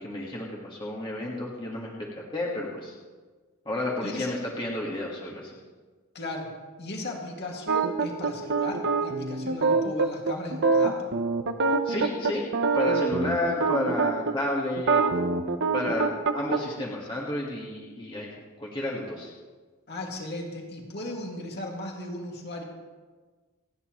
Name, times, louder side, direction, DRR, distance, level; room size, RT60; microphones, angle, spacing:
voice 1, 0.0-2.9 3.6-5.5 11.8-12.5 12.7-15.0 15.7-18.3 18.6-19.3, left 1 dB, 20° left, -3 dB, 1.7 m, -31 dB
voice 2, 4.0-4.4 6.1-6.5 6.8-11.0 19.9-22.6, left 1 dB, 50° left, 0 dB, 2.2 m, -36 dB
sound 1, 7.7-14.3 14.8-16.6, right 4 dB, 55° right, 0.9 m, -25 dB
28.5 x 9.5 x 3.1 m, 1.4 s
head